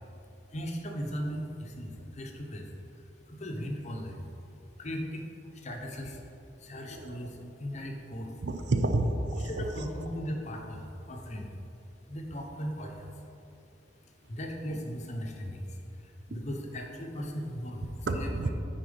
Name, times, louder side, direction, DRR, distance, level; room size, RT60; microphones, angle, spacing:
voice 1, 0.5-4.3 4.8-6.2 6.6-8.3 9.3-11.5 12.1-13.1 14.3-17.9 18.1-18.3, equal, 40° left, 2 dB, 0.9 m, -38 dB
voice 2, 6.8-7.2 8.4-9.9 16.3-16.4 18.1-18.5, right 2 dB, 70° right, 6 dB, 0.6 m, -30 dB
9.6 x 4.4 x 5.2 m, 2.7 s
head